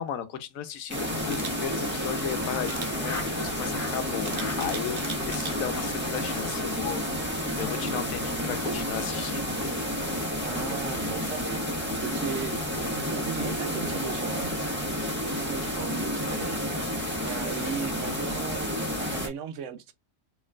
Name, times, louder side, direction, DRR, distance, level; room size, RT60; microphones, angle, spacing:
voice 1, 0.0-9.6, left 8 dB, 80° left, 1.1 m, -35 dB
sound 1, 0.9-19.3, left 1 dB, 10° right, 1.2 m, -30 dB
Camera, 1.3-1.5 2.6-2.9 4.2-5.5 6.0-6.3, right 5 dB, 45° right, 0.4 m, -38 dB
Laughter, 1.6-3.4 3.7-4.0 4.3-4.7 5.0-5.4 5.7-5.8 6.1-6.2 6.5-6.6 6.8-7.0 7.3-7.6, left 3 dB, 40° left, 1.8 m, -42 dB
voice 2, 10.4-11.6 12.0-12.6 12.9-14.6 15.2-16.6 17.2-19.9, right 8 dB, 70° right, 0.9 m, -36 dB
4.2 x 3.1 x 2.4 m
omnidirectional pair, 1.4 m